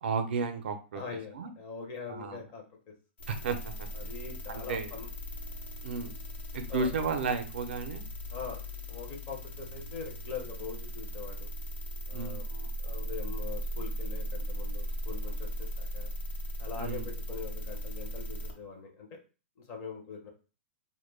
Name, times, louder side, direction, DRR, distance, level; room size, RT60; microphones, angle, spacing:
voice 1, 0.0-1.0 1.3-1.5 2.1-2.4 3.3-4.1 4.5-5.0 5.8-6.2 6.5-8.0 12.1-12.4 16.8-17.1, right 4 dB, 65° right, 7 dB, 0.5 m, -33 dB
voice 2, 0.9-2.9 3.9-5.1 6.7-6.9 8.3-8.6 8.9-11.5 12.1-16.1 16.6-19.1 19.6-20.3, left 5 dB, 25° left, 1 dB, 0.5 m, -42 dB
sound 1, 3.2-18.5, equal, 90° left, 0.9 m, -38 dB
2.1 x 2.1 x 3.1 m, 0.34 s
hypercardioid pair, 175°, 6 cm